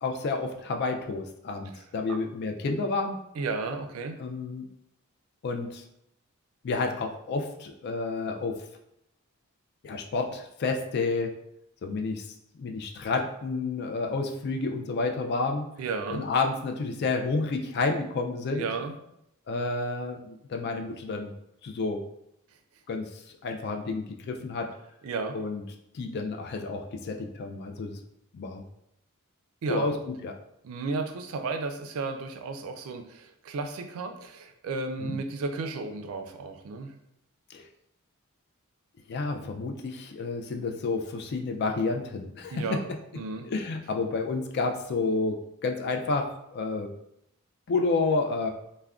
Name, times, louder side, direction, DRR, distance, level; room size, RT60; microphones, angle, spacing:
voice 1, 0.0-3.2 4.2-4.7 5.4-5.8 6.6-8.6 9.8-11.3 11.8-12.3 12.5-15.7 16.1-18.7 19.5-21.3 21.6-22.0 22.9-23.0 23.4-24.7 25.3-25.6 25.9-28.0 28.3-28.6 29.7-30.3 35.0-35.2 37.5-37.6 39.1-42.8 43.5-46.9 47.7-48.5, left 3 dB, 50° left, 3 dB, 0.3 m, -30 dB
voice 2, 3.4-4.2 15.8-16.2 18.5-19.0 25.0-25.4 29.6-30.0 30.6-36.9 42.5-42.8 43.1-43.5, right 3 dB, 70° right, 6 dB, 0.3 m, -33 dB
2.3 x 2.1 x 3.5 m, 0.80 s
head